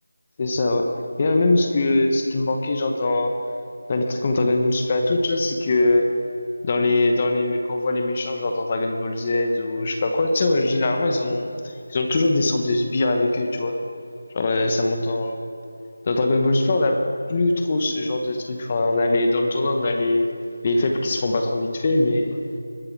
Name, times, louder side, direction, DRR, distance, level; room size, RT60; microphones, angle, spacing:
voice 1, 0.4-0.9 1.2-3.3 3.9-6.0 6.6-13.7 14.3-15.4 16.0-17.0 17.3-20.3 20.6-22.4, left 2 dB, 30° left, 4 dB, 0.9 m, -22 dB
21.0 x 7.7 x 4.7 m, 2.4 s
figure-of-eight pair, 170°, 0 cm